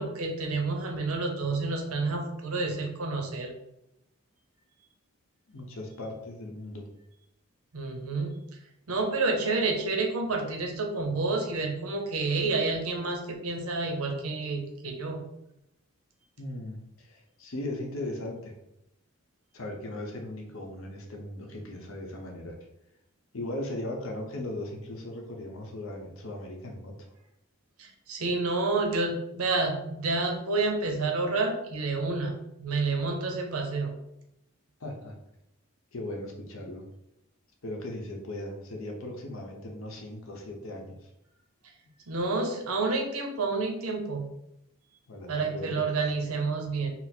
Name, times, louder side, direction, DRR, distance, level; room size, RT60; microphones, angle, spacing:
voice 1, 0.0-3.5 7.7-8.4 8.9-15.3 27.8-33.9 42.1-44.3 45.3-46.9, right 3 dB, 85° right, 3 dB, 0.8 m, -29 dB
voice 2, 5.5-6.9 16.4-18.5 19.5-22.6 23.3-27.1 34.8-35.1 35.9-36.9 37.6-41.0 45.1-45.8, left 1 dB, 65° left, 2 dB, 0.8 m, -38 dB
4.1 x 2.0 x 4.3 m, 0.83 s
head